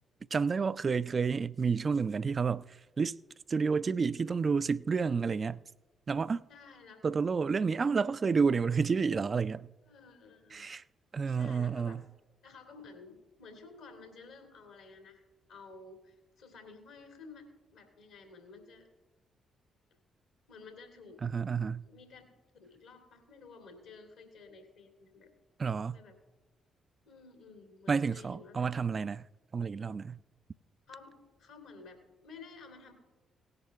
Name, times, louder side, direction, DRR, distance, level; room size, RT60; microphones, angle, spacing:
voice 1, 0.3-2.6 3.0-3.2 3.5-5.6 6.1-6.4 7.0-9.7 10.5-10.8 11.1-12.0 21.2-21.8 25.6-26.0 27.9-29.3 29.5-30.2, right 5 dB, 45° right, 0.3 m, -30 dB
voice 2, 6.5-7.0 9.8-10.6 11.2-12.0 12.4-15.2 15.5-18.9 20.5-21.2 21.8-22.2 22.6-25.3 25.6-26.2 27.1-28.7 30.9-32.9, left 4 dB, 80° left, 2.4 m, -53 dB
17.5 x 11.0 x 3.4 m
hypercardioid pair, 45°, 0 cm